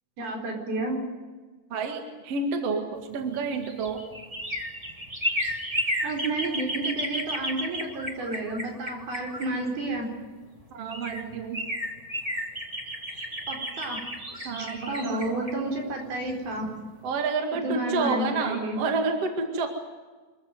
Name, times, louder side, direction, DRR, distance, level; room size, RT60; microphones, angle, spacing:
voice 1, 0.2-1.0 6.0-10.1 13.5-14.0 14.6-16.7 17.6-18.8, right 2 dB, 75° right, 1 dB, 6.4 m, -31 dB
voice 2, 1.7-4.1 10.7-11.7 14.4-15.4 17.0-19.7, right 4 dB, 45° right, 4 dB, 2.8 m, -29 dB
sound 1, 3.2-10.0 10.6-10.7 10.9-16.7 17.0-17.1, equal, 15° right, 1.2 m, -33 dB
26.0 x 14.5 x 9.4 m, 1.3 s
omnidirectional pair, 4.4 m